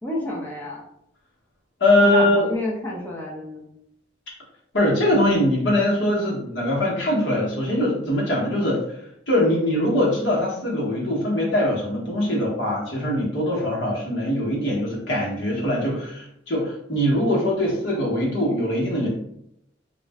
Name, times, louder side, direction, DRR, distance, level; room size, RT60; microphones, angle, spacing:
voice 1, 0.0-0.8 2.0-3.7, left 1 dB, 10° left, -4 dB, 0.5 m, -30 dB
voice 2, 1.8-2.5 4.7-8.8 9.3-19.1, left 1 dB, 65° left, -4 dB, 1.0 m, -22 dB
2.4 x 2.1 x 3.4 m, 0.76 s
head